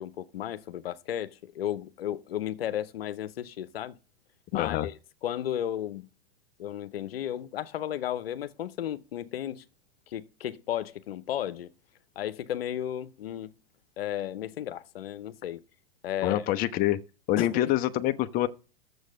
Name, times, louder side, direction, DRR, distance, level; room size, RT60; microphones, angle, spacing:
voice 1, 0.0-4.0 4.5-6.1 6.6-9.6 10.1-11.7 12.2-13.5 14.0-15.6 16.0-16.4 17.4-17.6, left 11 dB, 75° left, 0.7 m, -34 dB
voice 2, 4.5-4.9 16.2-17.0 17.3-18.5, left 14 dB, 30° left, 0.6 m, -26 dB
6.9 x 6.4 x 6.3 m
hypercardioid pair, 110°, 30 cm